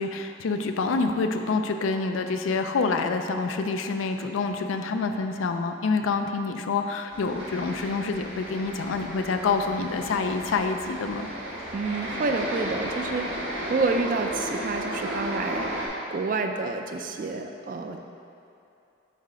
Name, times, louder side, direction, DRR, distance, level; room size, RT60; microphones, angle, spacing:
voice 1, 0.0-11.3, left 4 dB, 85° left, 6 dB, 0.4 m, -27 dB
sound 1, 7.1-15.9, right 1 dB, 85° right, 1.4 m, -34 dB
voice 2, 11.7-15.7 16.1-18.0, right 3 dB, 40° right, 5 dB, 0.3 m, -29 dB
7.5 x 3.2 x 4.8 m, 2.7 s
head